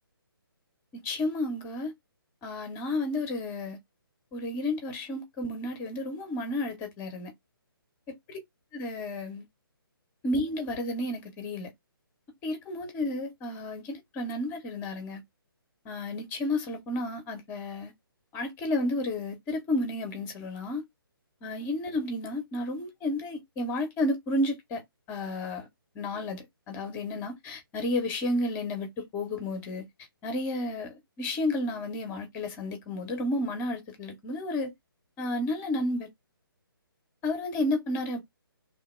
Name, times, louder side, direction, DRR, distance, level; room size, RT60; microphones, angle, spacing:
voice 1, 1.0-1.9 2.4-3.8 4.3-7.3 8.3-8.4 8.7-9.4 10.2-11.7 12.4-15.2 15.8-17.9 18.3-20.8 21.4-24.8 25.1-25.7 25.9-29.9 30.2-34.7 35.2-36.1 37.2-38.2, left 1 dB, 15° left, 0.7 m, -32 dB
2.9 x 2.2 x 3.0 m
figure-of-eight pair, 135°, 12 cm